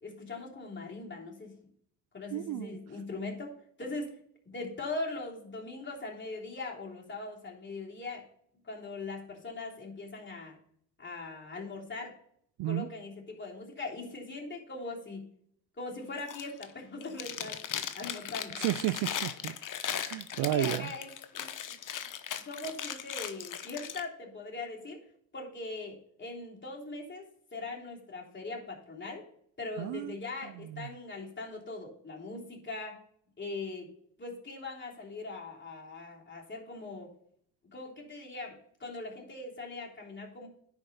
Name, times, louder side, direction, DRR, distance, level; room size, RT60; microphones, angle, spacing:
voice 1, 0.0-1.6 2.1-4.1 4.4-8.2 8.6-10.6 11.0-12.1 12.6-15.3 15.8-17.6 17.9-18.6 20.4-21.1 21.4-21.8 22.4-25.0 25.3-29.2 29.6-33.0 33.4-33.9 34.2-37.1 37.7-40.5, left 3 dB, 25° left, 3.2 m, -41 dB
voice 2, 2.3-2.7 12.6-12.9 18.6-19.6 19.9-20.9 29.8-30.1 30.7-30.9, right 14 dB, 60° right, 0.5 m, -32 dB
Chewing mastication, 16.2-16.7 17.0-24.0, left 9 dB, 45° left, 1.0 m, -38 dB
10.5 x 4.5 x 5.4 m
hypercardioid pair, 60°, 44 cm